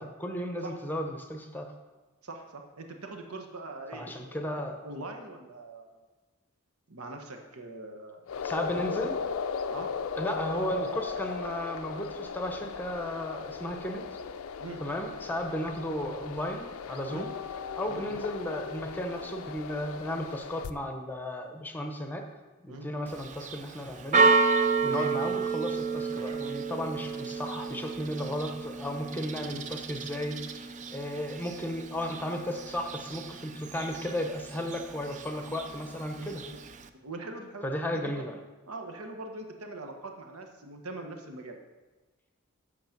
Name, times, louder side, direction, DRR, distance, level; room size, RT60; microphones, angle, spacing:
voice 1, 0.0-1.7 3.9-4.8 8.4-9.2 10.2-14.0 14.8-17.3 17.7-22.2 22.6-24.3 24.8-36.4 37.6-38.3, equal, 10° left, 4 dB, 0.7 m, -34 dB
voice 2, 2.2-4.6 4.8-6.0 6.9-8.3 9.7-9.9 14.6-14.8 17.1-17.3 17.9-18.0 22.7-22.9 24.8-25.1 26.2-26.4 36.2-36.6 37.0-37.6 37.9-38.2 38.7-41.6, right 2 dB, 80° right, 4 dB, 1.1 m, -42 dB
sound 1, 8.3-20.7, left 6 dB, 70° left, 0.4 m, -37 dB
Church bell, 23.1-36.9, right 4 dB, 35° right, 0.4 m, -31 dB
8.2 x 6.5 x 5.9 m, 1.2 s
head